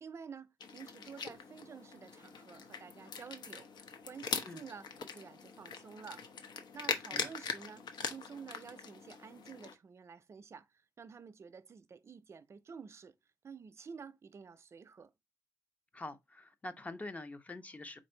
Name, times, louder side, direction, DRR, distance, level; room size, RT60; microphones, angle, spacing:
voice 1, 0.0-6.2 6.7-10.7 11.0-13.1 13.4-15.1, right 6 dB, 40° right, 0.4 m, -50 dB
sound 1, 0.6-9.7, left 6 dB, 85° left, 0.7 m, -42 dB
voice 2, 15.9-18.0, left 2 dB, 20° left, 0.5 m, -45 dB
4.3 x 2.6 x 4.3 m
wide cardioid pair, 155°, 7 cm